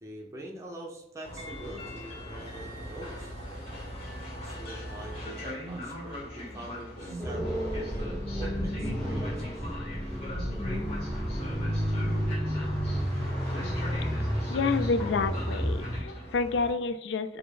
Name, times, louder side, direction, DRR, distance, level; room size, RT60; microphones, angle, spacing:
voice 1, 0.0-3.3 4.4-9.7, right 1 dB, 15° right, -1 dB, 0.8 m, -44 dB
Train, 1.2-16.7, equal, 35° left, 1.3 m, -40 dB
sound 1, 7.2-16.0, equal, 5° left, 1.6 m, -31 dB
voice 2, 14.4-17.4, left 4 dB, 80° left, 11 dB, 0.3 m, -29 dB
6.4 x 2.1 x 3.9 m, 0.80 s
head